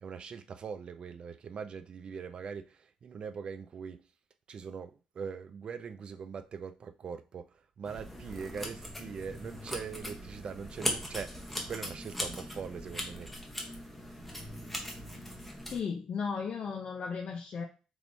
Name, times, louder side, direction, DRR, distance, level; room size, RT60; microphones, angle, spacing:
voice 1, 0.0-4.0 4.5-13.3, right 6 dB, 50° right, 9 dB, 0.4 m, -42 dB
sound 1, 7.8-15.8, left 1 dB, 5° left, 0.8 m, -39 dB
voice 2, 15.7-17.6, left 6 dB, 55° left, 2 dB, 0.4 m, -35 dB
3.4 x 3.0 x 2.6 m, 0.33 s
cardioid pair, 110°, 2 cm